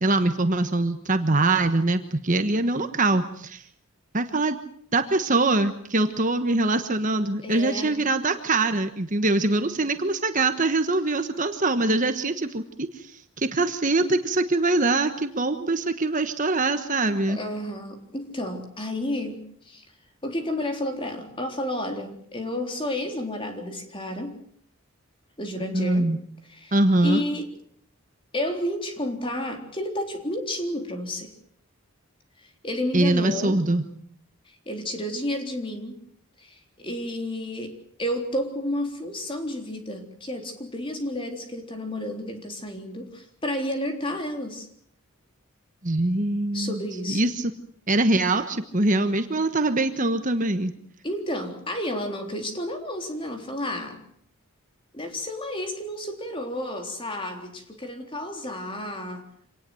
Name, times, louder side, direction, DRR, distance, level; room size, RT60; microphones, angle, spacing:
voice 1, 0.0-3.6 4.1-4.6 4.9-17.4 25.7-26.2 26.7-27.2 32.9-33.8 45.8-46.8 47.1-47.5 47.9-50.7, right 2 dB, 35° right, 8 dB, 1.3 m, -23 dB
voice 2, 7.4-8.1 17.2-19.8 20.2-24.4 25.4-26.1 26.5-26.8 27.0-27.5 28.3-31.3 32.4-33.6 34.5-36.0 36.4-37.7 38.0-44.7 46.5-47.3 51.0-54.0 54.9-59.3, left 1 dB, 25° left, 4 dB, 3.6 m, -31 dB
26.5 x 19.0 x 7.8 m, 0.63 s
head